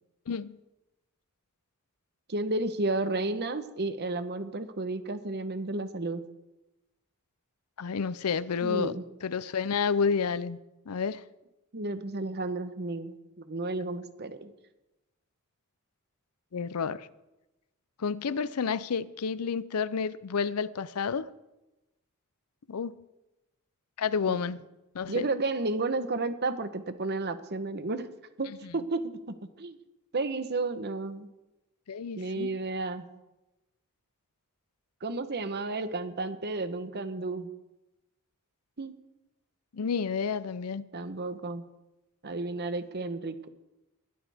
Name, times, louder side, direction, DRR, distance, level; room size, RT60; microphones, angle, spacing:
voice 1, 0.3-0.6 7.8-8.9 9.2-10.6 10.9-11.2 16.5-17.1 18.0-21.3 22.7-22.9 24.0-24.6 24.9-25.3 31.9-32.6 39.7-40.8, left 6 dB, 90° left, 0.6 m, -30 dB
voice 2, 2.3-6.2 8.6-9.1 11.7-14.5 24.3-24.4 25.1-28.1 28.4-29.8 30.1-31.3 32.2-33.1 35.0-37.5 38.8-38.9 40.9-41.6 42.2-43.3, right 2 dB, 50° right, 1.0 m, -32 dB
21.0 x 12.0 x 3.5 m
head